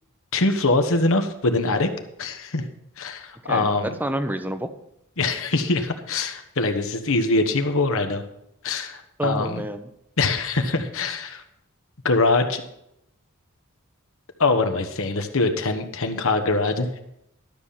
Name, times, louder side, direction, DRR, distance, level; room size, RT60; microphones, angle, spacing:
voice 1, 0.3-1.9 2.2-2.6 3.0-3.9 5.2-8.2 8.6-9.6 10.2-11.4 12.0-12.6 14.4-17.0, left 3 dB, 65° left, 7 dB, 1.2 m, -23 dB
voice 2, 4.0-4.7 9.2-9.9, right 1 dB, 10° right, 9 dB, 0.8 m, -28 dB
12.5 x 7.0 x 5.7 m, 0.79 s
head